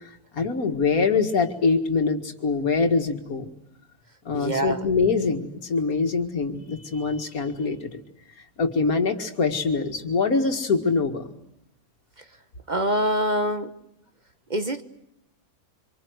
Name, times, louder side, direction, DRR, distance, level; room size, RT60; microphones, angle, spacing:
voice 1, 0.3-3.5 4.3-8.0 8.6-11.3, left 4 dB, 85° left, 2.4 m, -24 dB
voice 2, 4.3-4.9 12.2-12.3 12.7-13.8 14.5-14.8, equal, 35° right, 1.1 m, -25 dB
25.5 x 25.5 x 8.0 m
omnidirectional pair, 1.5 m